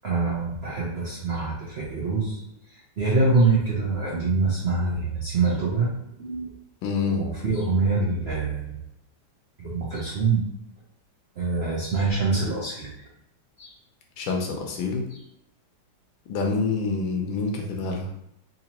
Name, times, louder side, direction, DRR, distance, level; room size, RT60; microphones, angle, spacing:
voice 1, 0.0-2.4 3.0-6.5 7.1-8.8 9.6-10.5 11.4-12.9 13.6-13.7, right 3 dB, 70° right, -6 dB, 0.6 m, -25 dB
voice 2, 6.8-7.2 14.2-15.1 16.3-18.1, left 4 dB, 75° left, 1 dB, 1.3 m, -27 dB
3.9 x 2.8 x 2.9 m, 0.79 s
omnidirectional pair, 2.3 m